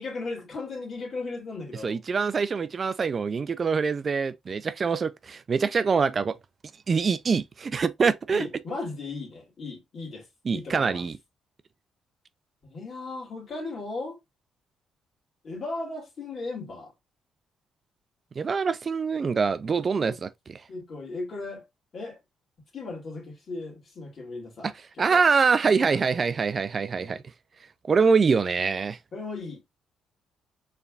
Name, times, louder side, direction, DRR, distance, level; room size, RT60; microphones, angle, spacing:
voice 1, 0.0-2.0 5.9-6.3 8.3-10.2 10.5-11.0 12.6-14.2 15.4-16.9 20.0-20.2 20.7-21.6 21.9-22.2 22.7-25.2 25.8-26.1 27.0-27.2 29.1-29.7, left 3 dB, 50° left, 2.2 m, -37 dB
voice 2, 1.8-6.4 6.9-8.5 10.5-11.2 18.4-20.6 24.6-24.7 25.0-27.2 27.9-29.0, right 5 dB, 40° right, 0.3 m, -24 dB
4.6 x 3.3 x 2.3 m
cardioid pair, 90°, 0 cm